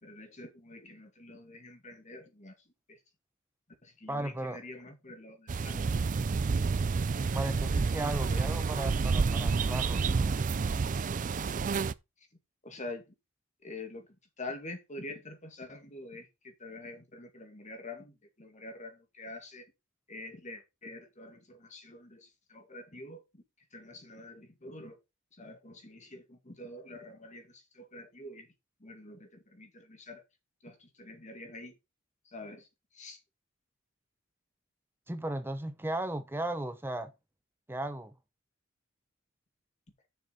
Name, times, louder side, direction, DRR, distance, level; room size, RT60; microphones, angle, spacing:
voice 1, 0.0-2.5 2.9-3.0 3.8-6.0 8.3-8.4 10.6-10.7 12.6-13.1 13.6-14.1 14.4-19.6 20.1-23.4 23.7-25.0 25.3-28.5 28.8-30.2 30.6-31.7 32.3-32.7 32.9-33.2, left 2 dB, 35° left, 2.1 m, -46 dB
voice 2, 4.1-4.6 7.3-10.4 35.1-37.1 37.7-38.1, right 1 dB, 10° right, 0.7 m, -36 dB
sound 1, 5.5-11.9, right 4 dB, 40° right, 0.4 m, -29 dB
7.0 x 6.5 x 5.1 m
head